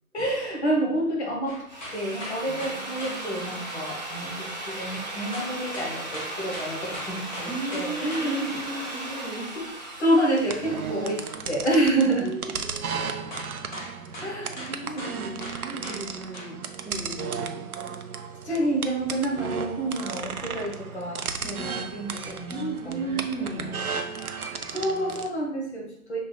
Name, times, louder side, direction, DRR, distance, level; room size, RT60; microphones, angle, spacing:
voice 1, 0.1-1.6 1.9-8.5 10.0-12.3 14.2-14.6 18.4-23.2 23.5-23.8 24.5-26.2, right 1 dB, 50° left, -2 dB, 1.2 m, -28 dB
sound 1, 1.5-3.2 5.3-8.3 12.9-13.1 13.3-16.0 16.3-16.5, left 1 dB, 30° left, 1.4 m, -39 dB
Drill, 1.5-11.3, right 1 dB, 30° right, 0.6 m, -37 dB
voice 2, 2.4-3.5 7.4-9.8 12.2-13.3 14.5-17.7 21.4-21.9 22.5-23.7, right 3 dB, 15° left, -10 dB, 0.9 m, -36 dB
sound 2, 10.4-25.3, right 6 dB, 75° right, 0.6 m, -35 dB
5.9 x 3.2 x 2.2 m, 0.74 s
figure-of-eight pair, 150°, 44 cm